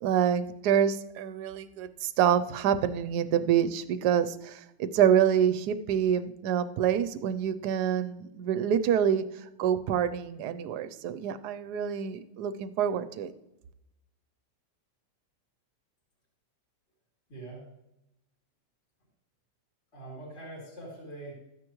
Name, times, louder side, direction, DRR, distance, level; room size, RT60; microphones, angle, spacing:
voice 1, 0.0-9.2 9.6-13.3, right 9 dB, 70° right, 12 dB, 1.1 m, -26 dB
voice 2, 17.3-17.7 19.9-21.3, right 2 dB, 35° left, -4 dB, 3.2 m, -43 dB
13.0 x 9.7 x 3.1 m, 0.89 s
omnidirectional pair, 2.0 m